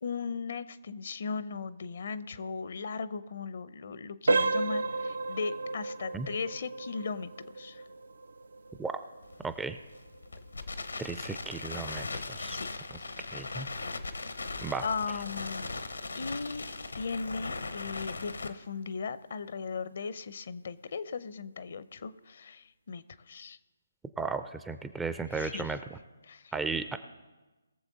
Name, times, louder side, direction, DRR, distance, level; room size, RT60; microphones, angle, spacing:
voice 1, 0.0-7.3 7.6-7.8 12.5-12.8 14.8-15.8 16.1-16.7 16.9-23.6 25.3-25.8 26.2-26.5, left 5 dB, 55° left, 15 dB, 0.6 m, -37 dB
sound 1, 4.3-14.9 15.3-15.5 16.1-16.2 16.7-16.9, right 3 dB, 65° right, 0.5 m, -35 dB
Crackle, 9.2-18.5, left 3 dB, 80° left, 1.0 m, -39 dB
voice 2, 9.4-9.8 11.0-12.6 13.3-13.7 14.6-14.9 24.2-26.0 26.5-27.0, right 4 dB, 5° right, 10 dB, 0.4 m, -35 dB
21.5 x 7.2 x 4.0 m, 1.2 s
figure-of-eight pair, 145°, 0 cm